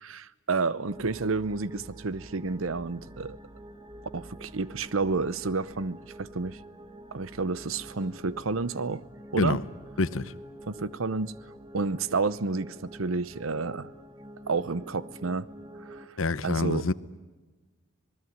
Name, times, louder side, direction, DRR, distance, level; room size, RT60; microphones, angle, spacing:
voice 1, 0.0-3.4 4.1-6.6 7.1-9.0 9.3-9.6 10.7-11.4 11.7-13.9 14.5-15.5 15.8-16.1 16.4-16.8, right 4 dB, 90° right, 0.9 m, -30 dB
sound 1, 0.8-16.1, right 1 dB, 25° right, 1.5 m, -47 dB
voice 2, 10.0-10.3 16.2-16.9, left 3 dB, 85° left, 0.9 m, -26 dB
26.5 x 20.0 x 9.5 m
head